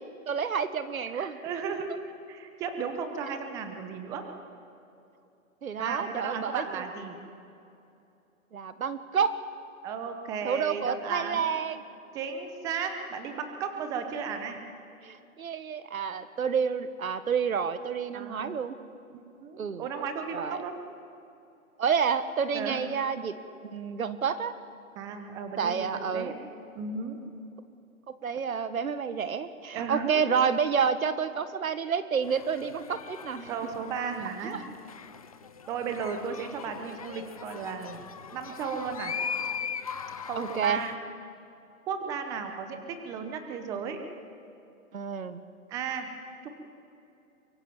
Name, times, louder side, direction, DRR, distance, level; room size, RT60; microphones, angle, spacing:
voice 1, 0.3-1.4 5.6-6.8 8.5-9.4 10.4-11.8 15.0-18.8 19.6-19.8 20.3-20.6 21.8-23.3 23.6-24.5 25.6-26.4 28.1-33.5 34.4-34.6 40.3-40.8 44.9-45.4, right 6 dB, 70° right, 12 dB, 1.6 m, -29 dB
voice 2, 1.1-4.2 5.8-7.2 9.8-11.4 12.1-14.6 18.1-18.6 19.1-20.8 22.5-22.9 25.0-26.3 26.7-27.2 29.7-30.2 33.5-34.6 35.7-38.0 38.3-39.1 40.3-40.9 41.9-44.0 45.7-46.1 46.4-46.5, right 6 dB, 10° right, 7 dB, 0.8 m, -35 dB
sound 1, 32.2-40.9, left 6 dB, 25° left, 0.6 m, -40 dB
24.0 x 23.5 x 7.2 m, 2.8 s
hypercardioid pair, 160°, 43 cm